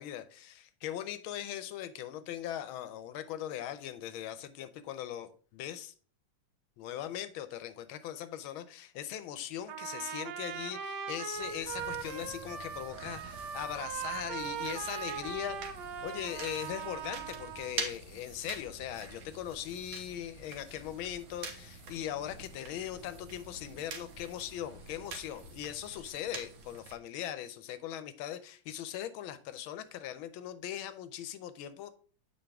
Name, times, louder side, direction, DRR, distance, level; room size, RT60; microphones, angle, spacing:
voice 1, 0.0-5.9 6.8-31.9, left 11 dB, 90° left, 12 dB, 1.5 m, -40 dB
Trumpet, 9.7-17.8, right 7 dB, 70° right, 1.1 m, -40 dB
sound 1, 11.3-27.0, right 5 dB, 85° right, 1.9 m, -47 dB
sound 2, 11.7-25.2, left 2 dB, 20° left, 1.2 m, -56 dB
7.7 x 4.6 x 3.4 m, 0.41 s
omnidirectional pair, 2.2 m